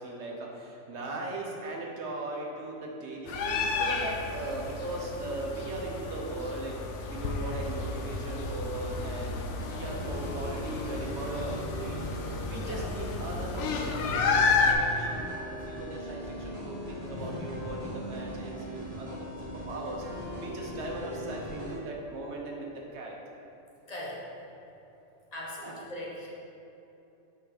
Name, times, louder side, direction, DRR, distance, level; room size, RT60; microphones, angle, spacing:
voice 1, 0.0-6.8 7.1-9.4 9.7-15.2 15.5-23.2 25.6-25.8, right 2 dB, 65° right, -1 dB, 1.2 m, -38 dB
sound 1, 3.3-14.7, left 4 dB, 75° left, 0.9 m, -31 dB
sound 2, 9.5-21.8, equal, 30° right, 1.5 m, -40 dB
voice 2, 17.1-17.7 23.9-24.2 25.3-26.3, left 1 dB, 35° left, -5 dB, 1.1 m, -40 dB
5.6 x 4.8 x 4.0 m, 3.0 s
omnidirectional pair, 1.2 m